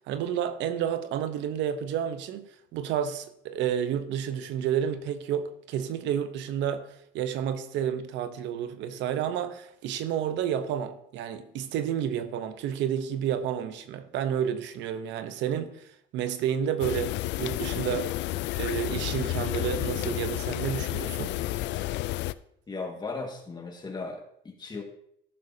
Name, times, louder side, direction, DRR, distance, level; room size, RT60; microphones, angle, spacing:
voice 1, 0.1-6.9 7.1-18.1 18.6-21.4, right 9 dB, 80° right, 0.9 m, -30 dB
sound 1, 16.8-22.3, left 16 dB, 75° left, 0.4 m, -31 dB
voice 2, 22.7-24.8, left 3 dB, 25° left, 1.8 m, -37 dB
15.0 x 6.5 x 2.8 m
cardioid pair, 110°, 19 cm